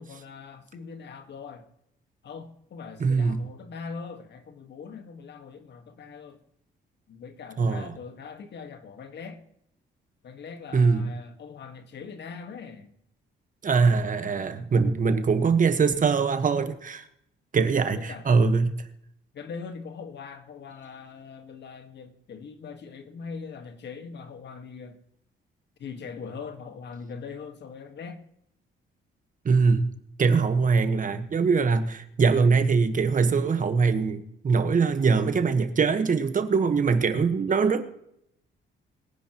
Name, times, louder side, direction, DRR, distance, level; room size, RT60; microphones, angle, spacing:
voice 1, 0.0-1.7 2.2-6.4 7.1-9.4 10.2-12.9 17.9-18.4 19.3-25.0 25.8-28.2 37.5-37.6, left 5 dB, 60° left, 1.6 m, -41 dB
voice 2, 3.0-3.4 7.6-7.9 10.7-11.1 13.6-17.1 17.5-18.7 29.4-29.9 30.2-37.9, right 5 dB, 40° right, 1.4 m, -22 dB
22.0 x 10.5 x 3.0 m
cardioid pair, 90°, 20 cm